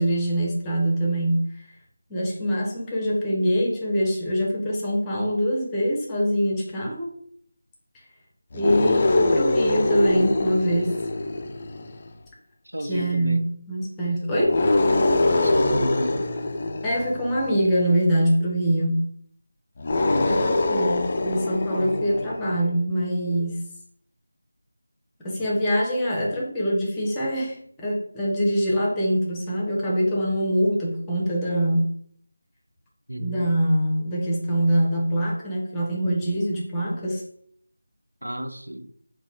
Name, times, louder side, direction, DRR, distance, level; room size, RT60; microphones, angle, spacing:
voice 1, 0.0-1.6 2.1-7.1 8.5-11.0 12.8-14.6 16.8-19.1 20.3-23.6 25.2-31.9 33.2-37.2, equal, 10° left, -3 dB, 0.8 m, -24 dB
sound 1, 8.5-12.1 14.4-17.6 19.8-22.5, left 2 dB, 30° left, 0.4 m, -23 dB
voice 2, 12.7-13.4 15.4-16.3 20.1-20.5 33.1-33.5 38.2-38.9, right 1 dB, 85° right, 7 dB, 0.5 m, -32 dB
4.0 x 2.2 x 4.1 m, 0.64 s
figure-of-eight pair, 165°, 0 cm